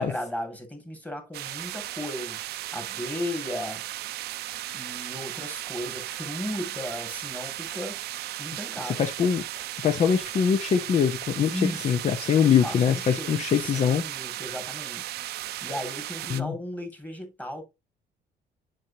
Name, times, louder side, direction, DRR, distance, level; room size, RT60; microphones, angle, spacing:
voice 1, 0.0-3.9 4.7-8.0 8.4-9.1 11.5-11.9 12.4-15.2 15.6-17.6, left 1 dB, 10° left, 2.4 m, -35 dB
sound 1, 1.3-16.4, right 15 dB, 75° right, 0.6 m, -36 dB
voice 2, 8.8-14.0 16.3-16.5, left 7 dB, 40° left, 0.7 m, -23 dB
7.6 x 6.1 x 2.8 m
cardioid pair, 110°, 17 cm